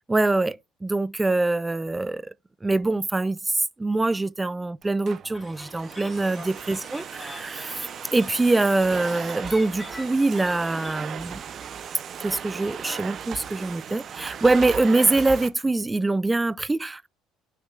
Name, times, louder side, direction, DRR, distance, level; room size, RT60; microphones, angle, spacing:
voice 1, 0.1-2.3 2.6-11.4 12.2-17.1, right 2 dB, 15° right, 0.4 m, -24 dB
Domestic sounds home sounds, 4.8-15.5, right 8 dB, 45° right, 0.8 m, -37 dB
sound 1, 5.3-11.1, left 2 dB, 15° left, 1.8 m, -44 dB
9.7 x 6.5 x 2.4 m
cardioid pair, 100°, 0 cm